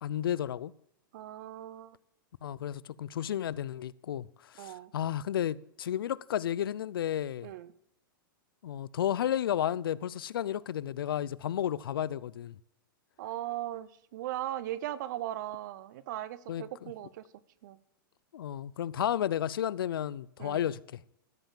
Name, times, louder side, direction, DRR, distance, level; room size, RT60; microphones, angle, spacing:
voice 1, 0.0-0.7 2.4-7.5 8.6-12.6 16.5-16.9 18.3-21.0, left 10 dB, 85° left, 0.4 m, -32 dB
voice 2, 1.1-2.0 4.6-4.9 7.4-7.7 13.2-17.2 17.6-17.8 20.4-20.7, right 13 dB, 55° right, 0.7 m, -38 dB
13.0 x 5.7 x 7.4 m
hypercardioid pair, 140°, 11 cm